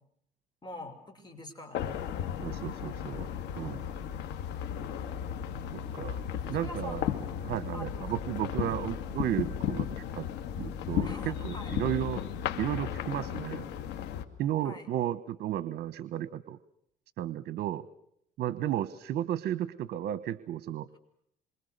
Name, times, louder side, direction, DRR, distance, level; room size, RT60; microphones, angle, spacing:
voice 1, 0.6-2.0 3.6-3.7 6.3-7.3 7.7-8.1 8.6-8.9 11.0-11.8 14.6-14.9, left 2 dB, 25° left, 6 dB, 6.6 m, -45 dB
sound 1, 1.7-14.3, left 9 dB, 85° left, 2.3 m, -35 dB
voice 2, 2.4-3.3 3.6-3.8 5.7-6.2 6.5-7.1 7.4-10.3 10.6-12.2 12.6-13.7 14.4-16.6 17.2-17.9 18.4-21.0, right 11 dB, 70° right, 15 dB, 1.1 m, -33 dB
27.5 x 25.5 x 6.7 m, 0.73 s
cardioid pair, 110°, 17 cm